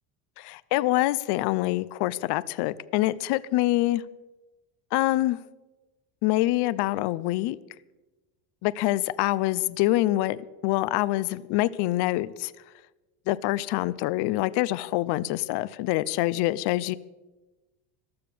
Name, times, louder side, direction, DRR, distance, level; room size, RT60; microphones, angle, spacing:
voice 1, 0.4-4.0 4.9-5.4 6.2-7.6 8.6-12.5 13.3-17.0, left 17 dB, 55° left, 18 dB, 0.6 m, -25 dB
15.0 x 12.5 x 6.9 m, 1.1 s
cardioid pair, 145°, 49 cm